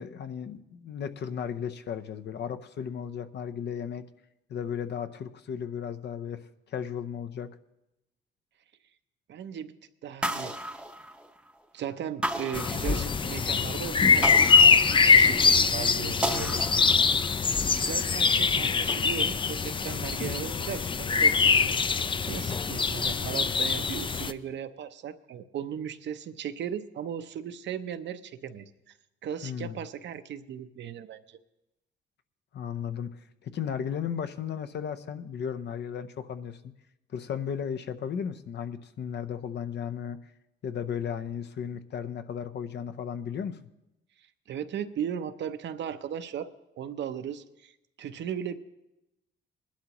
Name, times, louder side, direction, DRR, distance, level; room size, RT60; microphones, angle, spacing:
voice 1, 0.0-4.0 4.5-6.4 6.7-7.5 29.4-29.8 32.5-33.1 33.4-36.7 37.1-40.2 40.6-43.6, left 8 dB, 60° left, 10 dB, 0.7 m, -35 dB
voice 2, 9.3-9.8 10.0-10.5 11.7-14.4 15.0-16.6 17.7-29.0 29.2-31.4 44.5-46.5 46.8-47.7 48.0-48.6, right 9 dB, 65° right, 10 dB, 0.7 m, -37 dB
sound 1, 10.2-11.6 12.2-13.4 14.2-15.5 16.2-17.4, right 1 dB, 5° right, 0.8 m, -34 dB
sound 2, 12.5-24.3, left 5 dB, 25° left, 0.4 m, -23 dB
20.5 x 11.5 x 3.0 m, 0.92 s
cardioid pair, 90°, 20 cm